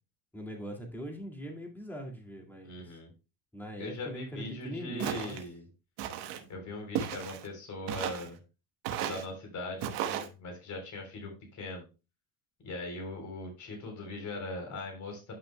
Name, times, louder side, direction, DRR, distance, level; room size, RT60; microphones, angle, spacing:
voice 1, 0.3-3.0 3.5-5.4, equal, 5° left, 1 dB, 2.2 m, -41 dB
voice 2, 2.6-3.1 3.8-5.7 6.5-8.4 9.0-11.8 12.6-15.3, left 2 dB, 45° left, 2 dB, 3.7 m, -40 dB
Walk footsteps, 5.0-5.4 6.0-6.4 6.9-7.5 7.9-8.3 8.8-9.3 9.8-10.3, right 9 dB, 75° right, 1.2 m, -34 dB
10.5 x 5.9 x 2.2 m, 0.29 s
cardioid pair, 120°, 42 cm